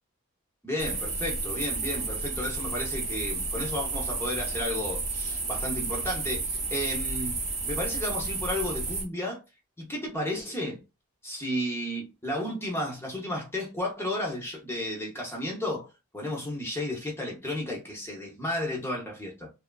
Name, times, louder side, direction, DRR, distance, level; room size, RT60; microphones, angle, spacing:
voice 1, 0.6-7.4 7.7-9.4 9.8-10.8 11.2-19.5, left 1 dB, 10° left, 0.6 m, -33 dB
sound 1, 0.8-9.1, right 3 dB, 30° right, 0.6 m, -31 dB
2.9 x 2.3 x 2.2 m
head